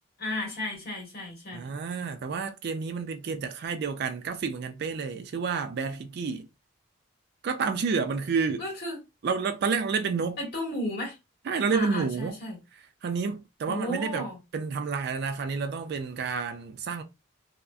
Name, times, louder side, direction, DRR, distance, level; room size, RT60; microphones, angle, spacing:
voice 1, 0.2-1.7 8.6-9.0 10.4-11.2 11.7-12.6 13.6-14.4, left 1 dB, 45° left, 1.4 m, -34 dB
voice 2, 1.5-6.5 7.4-8.6 9.2-10.4 11.5-12.4 13.0-14.3 14.5-17.0, right 5 dB, 50° right, 0.3 m, -30 dB
2.8 x 2.4 x 2.3 m
head